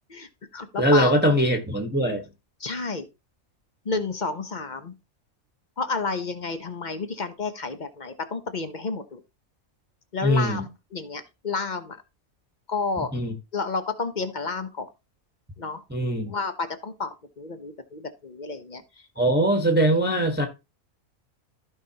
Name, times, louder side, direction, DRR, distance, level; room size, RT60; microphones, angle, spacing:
voice 1, 0.1-1.1 2.6-3.1 3.8-4.9 5.8-9.2 10.1-12.0 12.7-13.1 13.5-14.9 15.6-15.8 16.3-18.8, left 4 dB, 35° left, 0.9 m, -31 dB
voice 2, 0.8-2.2 10.2-10.7 13.1-13.3 15.9-16.3 19.2-20.5, right 1 dB, 10° right, 1.2 m, -21 dB
15.0 x 5.3 x 2.9 m
omnidirectional pair, 1.5 m